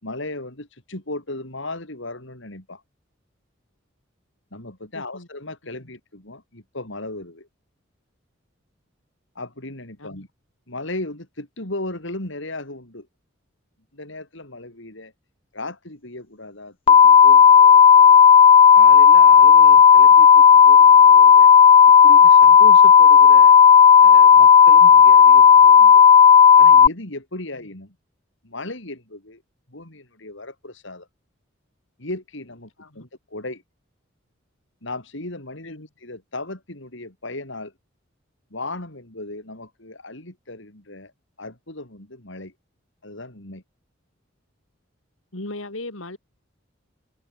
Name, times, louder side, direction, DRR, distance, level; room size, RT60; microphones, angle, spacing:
voice 1, 0.0-2.8 4.5-7.5 9.3-10.3 10.7-13.1 13.9-15.1 15.5-18.2 18.7-21.5 22.0-23.6 24.0-26.0 26.5-28.0 28.4-29.4 29.7-31.1 32.0-33.6 34.8-37.7 38.5-41.1 41.4-42.5 43.0-43.6, left 2 dB, 65° left, 4.9 m, -36 dB
voice 2, 4.9-5.3 10.0-10.3 32.8-33.0 35.6-35.9 45.3-46.2, left 2 dB, 90° left, 3.7 m, -37 dB
sound 1, 16.9-26.9, left 7 dB, 30° left, 0.3 m, -10 dB
head